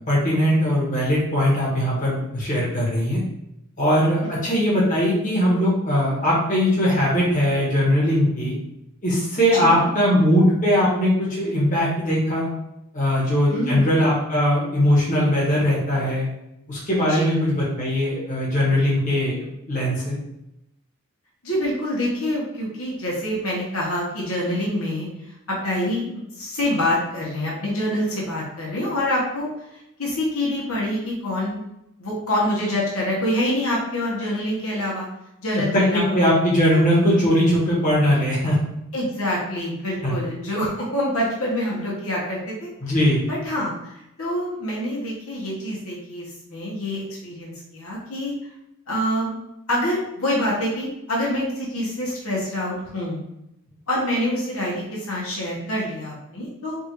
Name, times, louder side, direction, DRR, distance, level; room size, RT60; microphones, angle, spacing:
voice 1, 0.0-3.2 3.8-8.5 9.0-12.5 12.9-16.3 16.7-20.2 35.5-38.6 40.0-40.2 42.8-43.3, equal, 40° left, -6 dB, 1.5 m, -20 dB
voice 2, 9.5-9.9 13.5-13.9 17.1-17.4 21.4-25.1 25.5-26.1 26.4-29.7 30.0-31.6 32.0-35.1 35.4-36.2 36.7-36.8 38.9-42.7 43.3-48.3 48.9-49.3 49.7-53.2 53.9-56.8, left 1 dB, 80° left, -5 dB, 1.2 m, -26 dB
5.2 x 2.6 x 3.1 m, 0.85 s
head